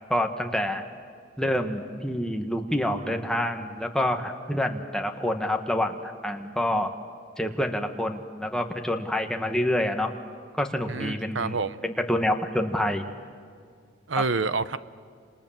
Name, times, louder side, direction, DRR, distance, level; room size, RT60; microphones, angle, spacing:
voice 1, 0.1-0.8 1.4-6.9 7.4-10.1 10.5-11.6 11.8-13.1, left 1 dB, 5° left, 4 dB, 1.7 m, -27 dB
voice 2, 10.9-11.8 14.1-14.8, right 4 dB, 80° right, 14 dB, 0.9 m, -28 dB
29.5 x 27.0 x 7.5 m, 2.1 s
head